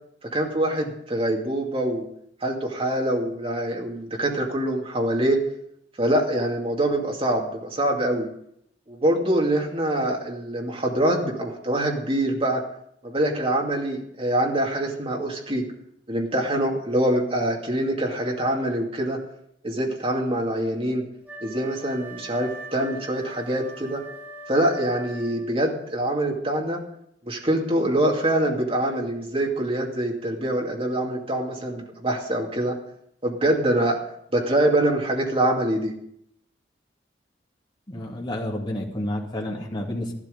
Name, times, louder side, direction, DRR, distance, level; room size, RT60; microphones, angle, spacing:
voice 1, 0.3-2.1 2.4-5.4 6.0-8.3 8.9-12.6 13.0-15.7 16.1-19.2 19.6-21.0 21.4-24.0 24.5-26.8 27.3-32.7 33.2-34.0 34.3-35.9, right 1 dB, 30° right, 0 dB, 2.5 m, -24 dB
Wind instrument woodwind instrument, 21.2-25.7, right 1 dB, 10° right, 2.4 m, -41 dB
voice 2, 37.9-40.1, left 1 dB, 25° left, -1 dB, 2.4 m, -30 dB
14.0 x 12.0 x 5.3 m, 0.72 s
head